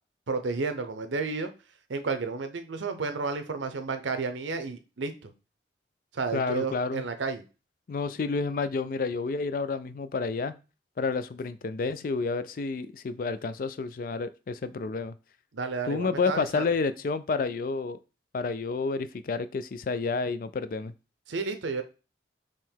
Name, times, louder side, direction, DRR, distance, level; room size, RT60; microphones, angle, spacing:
voice 1, 0.3-1.5 1.9-5.3 6.1-7.4 15.5-16.7 21.3-21.8, right 4 dB, 85° right, 9 dB, 0.7 m, -31 dB
voice 2, 6.3-7.0 7.9-10.5 11.0-15.1 15.9-18.0 18.3-20.9, left 4 dB, 50° left, 13 dB, 0.3 m, -30 dB
3.7 x 3.0 x 4.5 m, 0.32 s
head